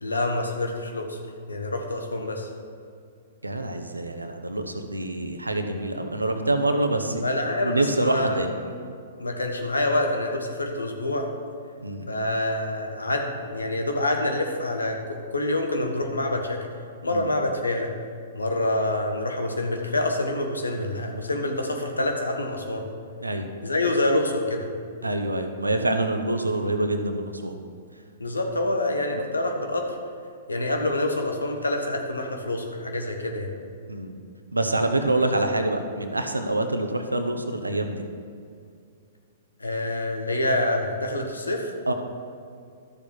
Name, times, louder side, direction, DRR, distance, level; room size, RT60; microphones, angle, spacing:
voice 1, 0.0-1.2 1.5-2.5 7.2-8.7 9.2-11.3 12.1-16.6 17.0-17.9 18.3-22.8 23.6-24.7 28.2-30.0 30.5-33.5 39.6-41.7, left 1 dB, 85° left, 3 dB, 1.4 m, -26 dB
voice 2, 3.4-7.2 7.6-8.5 11.8-12.1 17.1-17.3 23.2-23.4 25.0-27.5 33.9-34.1 34.5-38.0 41.9-42.0, right 2 dB, 90° right, 6 dB, 0.9 m, -26 dB
13.0 x 6.9 x 4.6 m, 2.3 s
figure-of-eight pair, 110°, 0 cm